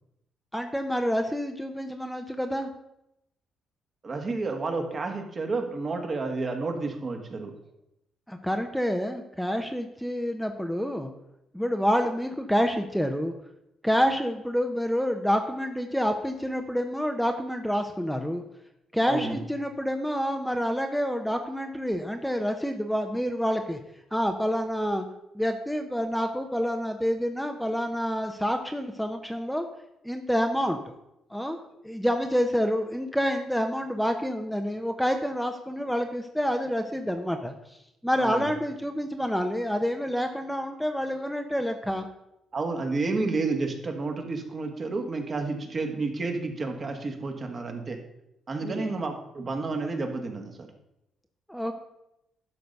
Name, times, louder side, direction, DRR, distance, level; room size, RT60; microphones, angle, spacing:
voice 1, 0.5-2.7 8.3-11.1 11.5-13.3 13.8-18.4 18.9-23.8 24.1-25.0 25.3-29.7 30.0-30.9 31.3-31.6 31.8-37.8 38.0-42.1 48.6-48.9 51.5-51.7, equal, ahead, 5 dB, 0.8 m, -28 dB
voice 2, 4.0-7.5 19.1-19.4 38.2-38.5 42.5-48.0 48.5-50.7, right 3 dB, 40° right, 4 dB, 1.6 m, -30 dB
11.5 x 4.0 x 6.6 m, 0.84 s
cardioid pair, 90°, 0 cm